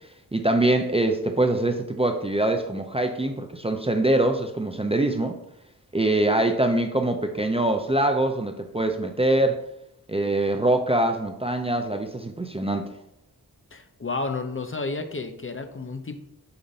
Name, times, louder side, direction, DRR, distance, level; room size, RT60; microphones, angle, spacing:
voice 1, 0.3-5.4 5.9-9.6 10.1-12.8, right 1 dB, 15° right, 5 dB, 0.5 m, -23 dB
voice 2, 13.7-16.1, left 3 dB, 35° left, 7 dB, 0.6 m, -31 dB
6.9 x 2.6 x 5.3 m, 0.77 s
wide cardioid pair, 105°, 37 cm